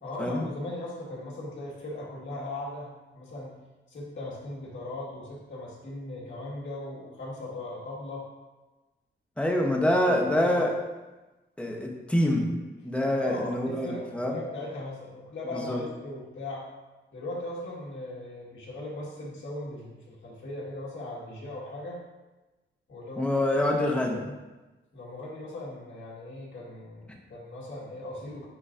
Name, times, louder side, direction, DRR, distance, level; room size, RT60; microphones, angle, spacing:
voice 1, 0.0-3.6 3.9-8.3 9.6-10.6 13.2-16.7 17.1-22.0 22.9-23.4 23.7-24.3 24.9-28.5, left 2 dB, 75° left, -4 dB, 1.7 m, -39 dB
voice 2, 9.4-10.7 11.6-12.5 12.8-14.4 15.6-15.8 23.2-24.2, left 1 dB, 5° left, 0 dB, 0.8 m, -25 dB
9.7 x 3.8 x 2.6 m, 1.1 s
wide cardioid pair, 130°, 20 cm